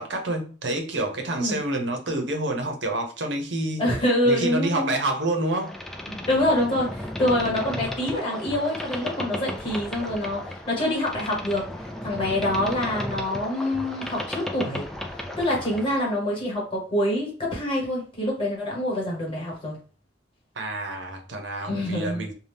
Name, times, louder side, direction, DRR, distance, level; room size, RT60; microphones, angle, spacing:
voice 1, 0.0-3.8 4.2-5.7 20.6-22.3, right 1 dB, 75° right, 0.7 m, -28 dB
voice 2, 3.8-4.9 6.1-11.6 12.0-14.8 15.4-19.8 21.7-22.3, left 1 dB, 30° left, 1.3 m, -26 dB
Boat Water vehicle, 5.5-16.0, left 1 dB, ahead, 0.3 m, -34 dB
2.7 x 2.3 x 3.4 m
head